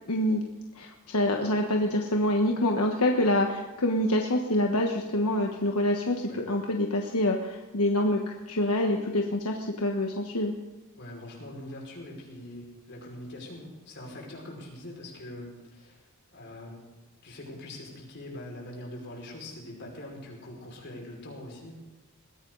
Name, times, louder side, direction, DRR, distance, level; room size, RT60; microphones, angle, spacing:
voice 1, 0.1-0.4 0.8-10.5, left 1 dB, 80° left, 2 dB, 1.4 m, -26 dB
voice 2, 11.0-16.0 16.3-16.8 17.2-21.7, left 1 dB, 50° left, -2 dB, 5.5 m, -43 dB
21.0 x 16.0 x 4.1 m, 1.2 s
head